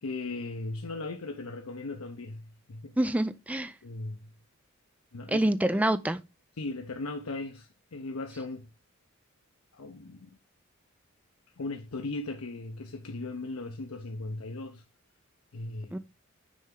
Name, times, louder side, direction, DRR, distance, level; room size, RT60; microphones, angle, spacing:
voice 1, 0.0-3.0 3.8-4.3 5.1-5.5 6.6-8.7 9.7-10.4 11.6-14.8 15.5-16.0, left 2 dB, 90° left, 0.7 m, -38 dB
voice 2, 3.0-3.7 5.3-6.2 15.9-16.0, right 1 dB, 5° right, 0.3 m, -26 dB
6.3 x 4.4 x 3.7 m
head